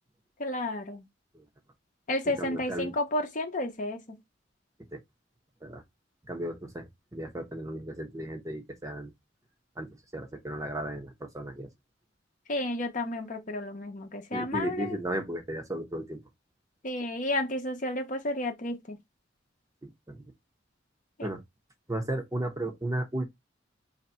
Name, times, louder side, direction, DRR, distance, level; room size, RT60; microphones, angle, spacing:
voice 1, 0.4-1.0 2.1-4.2 12.5-15.0 16.8-19.0 21.2-21.3, left 1 dB, 40° left, 0.9 m, -32 dB
voice 2, 2.2-2.9 4.9-5.0 5.6-5.8 6.3-9.1 9.8-11.7 14.3-16.2 19.8-20.2 21.2-21.4 21.9-23.3, right 1 dB, 20° right, 0.8 m, -35 dB
3.2 x 2.8 x 4.4 m
head